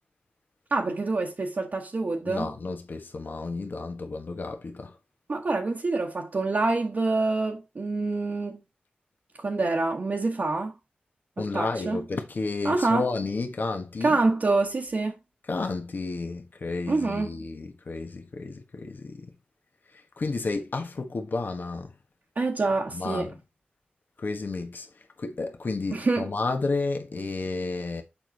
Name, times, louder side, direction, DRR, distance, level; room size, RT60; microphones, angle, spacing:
voice 1, 0.7-2.5 5.3-8.6 9.4-10.7 11.4-12.0 12.6-13.1 14.0-15.1 16.9-17.3 22.4-23.3 25.9-26.3, right 3 dB, 55° right, 1.2 m, -26 dB
voice 2, 2.2-4.9 11.4-14.2 15.5-19.3 20.2-21.9 22.9-23.3 24.2-24.9 25.2-28.0, left 3 dB, 60° left, 1.3 m, -31 dB
7.1 x 4.7 x 4.0 m
cardioid pair, 50°, 4 cm